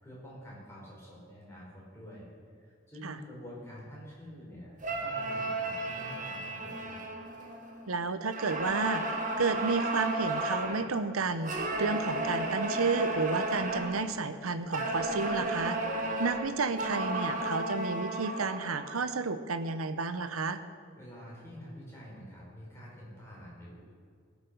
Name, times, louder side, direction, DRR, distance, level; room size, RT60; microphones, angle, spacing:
voice 1, 0.0-2.3 2.6-7.0 21.0-23.8, equal, 10° left, -5 dB, 4.3 m, -47 dB
sound 1, 4.8-7.9 8.3-10.9 11.4-14.1 14.7-18.9, right 2 dB, 40° right, 1.5 m, -33 dB
voice 2, 7.9-15.8 16.2-20.6, right 4 dB, 90° right, 11 dB, 0.8 m, -31 dB
17.5 x 7.2 x 6.6 m, 2.1 s
head